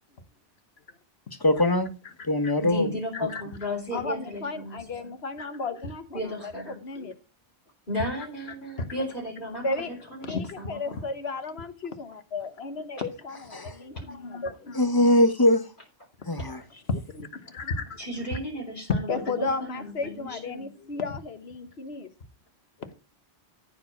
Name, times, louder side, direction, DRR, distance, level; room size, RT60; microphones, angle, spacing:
voice 1, 1.4-1.9 2.2-2.9 13.5-13.8 14.7-15.7 16.2-16.6, left 1 dB, 20° left, 0.9 m, -22 dB
voice 2, 2.6-4.9 6.1-6.8 7.9-11.1 13.9-14.0 18.0-20.7, equal, 50° left, 3.8 m, -34 dB
voice 3, 3.9-7.1 8.8-8.9 9.6-9.9 10.2-14.8 16.9-18.0 18.9-22.1 22.8-22.9, left 3 dB, 70° left, 1.5 m, -33 dB
14.5 x 4.8 x 6.0 m
omnidirectional pair, 1.1 m